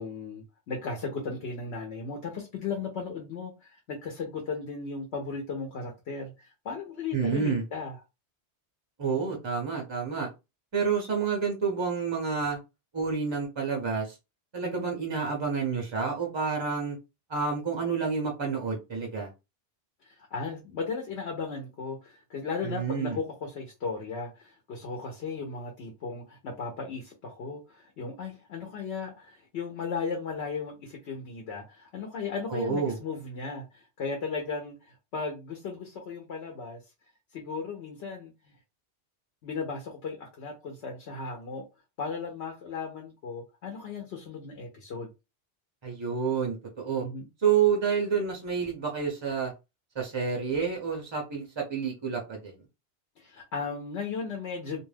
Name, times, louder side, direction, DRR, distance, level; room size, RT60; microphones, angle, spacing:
voice 1, 0.0-7.9 14.6-14.9 20.0-36.8 37.3-38.5 39.4-41.7 42.0-45.1 47.0-47.3 53.2-54.8, left 4 dB, 75° left, 1.0 m, -36 dB
voice 2, 7.1-7.6 9.0-10.3 10.7-12.6 12.9-14.2 14.5-17.0 17.3-19.3 22.6-23.2 32.5-33.0 45.8-47.0 47.4-49.5 50.0-52.5, right 6 dB, 40° right, 0.4 m, -29 dB
2.3 x 2.2 x 3.2 m
omnidirectional pair, 1.1 m